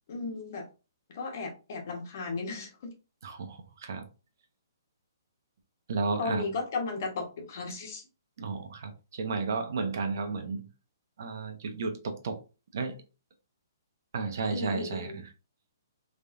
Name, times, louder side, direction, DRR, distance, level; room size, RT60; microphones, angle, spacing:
voice 1, 0.1-0.7 1.1-2.9 6.2-8.0 14.5-15.2, left 4 dB, 40° left, 1.3 m, -35 dB
voice 2, 3.2-4.1 5.9-6.5 8.4-10.7 11.2-12.4 12.7-12.9 14.1-15.2, right 4 dB, 50° right, 1.0 m, -33 dB
4.2 x 3.5 x 2.6 m
hypercardioid pair, 170°, 2 cm